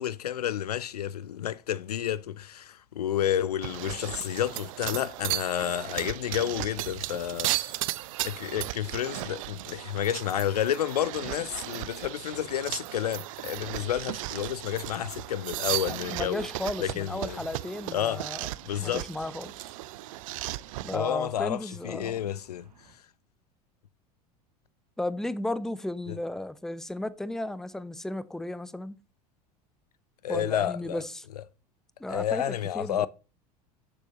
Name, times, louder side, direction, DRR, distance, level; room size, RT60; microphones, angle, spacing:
voice 1, 0.0-7.8 8.2-16.5 16.8-17.4 17.9-18.2 18.6-19.0 20.9-22.7 26.1-26.2 30.2-31.0 32.1-33.1, left 10 dB, 75° left, 0.5 m, -30 dB
sound 1, 3.1-23.0, right 5 dB, 75° right, 1.6 m, -58 dB
sound 2, 3.6-21.0, right 18 dB, 55° right, 0.5 m, -36 dB
voice 2, 15.9-18.5 18.8-19.7 20.8-22.2 25.0-29.0 30.3-31.3 32.0-33.1, left 1 dB, ahead, 0.6 m, -34 dB
11.5 x 6.9 x 2.8 m
figure-of-eight pair, 75°, 20 cm